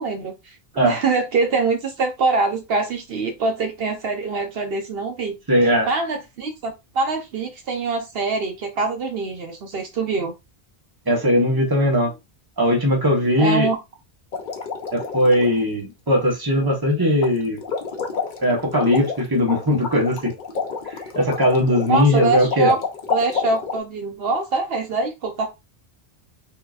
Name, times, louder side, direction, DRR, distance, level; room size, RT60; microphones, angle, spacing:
voice 1, 0.0-5.4 5.6-10.3 13.4-13.8 21.9-22.8 23.1-25.5, right 3 dB, 70° right, 0.9 m, -24 dB
voice 2, 5.5-5.9 11.1-12.1 12.6-13.7 14.9-17.6 18.4-20.3 21.1-22.7, equal, 20° right, 1.1 m, -19 dB
sound 1, 14.3-15.5 17.2-17.3 17.6-23.8, left 5 dB, 55° left, 0.8 m, -29 dB
3.8 x 2.8 x 2.4 m
omnidirectional pair, 1.0 m